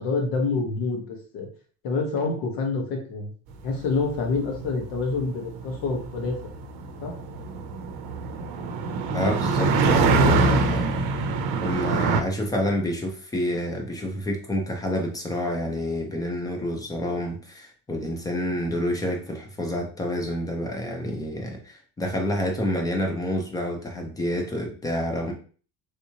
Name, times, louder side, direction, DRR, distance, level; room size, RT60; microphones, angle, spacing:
voice 1, 0.0-1.5 1.8-3.3 3.6-6.4 7.0-7.2, left 3 dB, 70° left, 2 dB, 1.2 m, -27 dB
sound 1, 3.7-12.2, right 3 dB, 90° right, 0.6 m, -24 dB
voice 2, 9.1-11.0 11.6-25.3, left 1 dB, 10° left, 2 dB, 0.4 m, -28 dB
3.4 x 2.9 x 2.8 m, 0.41 s
cardioid pair, 175°, 35 cm